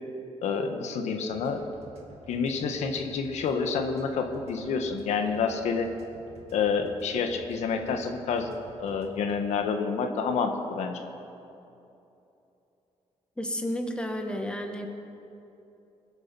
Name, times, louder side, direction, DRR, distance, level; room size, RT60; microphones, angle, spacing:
voice 1, 0.4-1.6 2.3-5.9 6.5-8.5 8.8-11.0, left 5 dB, 80° left, 5 dB, 1.2 m, -28 dB
sound 1, 1.3-9.4, right 2 dB, 65° right, 2.5 m, -50 dB
voice 2, 13.4-14.9, equal, 10° left, 4 dB, 1.4 m, -31 dB
21.0 x 8.0 x 6.0 m, 2.9 s
cardioid pair, 105°, 11 cm